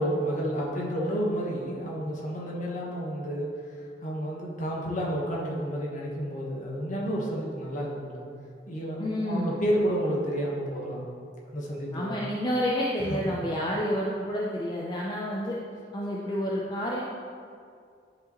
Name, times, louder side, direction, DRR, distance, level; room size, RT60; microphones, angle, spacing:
voice 1, 0.0-3.5 3.7-8.2 8.7-11.1 11.5-12.2 13.1-13.3, equal, 45° left, -4 dB, 1.3 m, -30 dB
voice 2, 9.0-9.6 11.9-15.6 15.9-17.0, equal, 25° left, -4 dB, 0.6 m, -29 dB
10.5 x 4.8 x 3.1 m, 2.3 s
head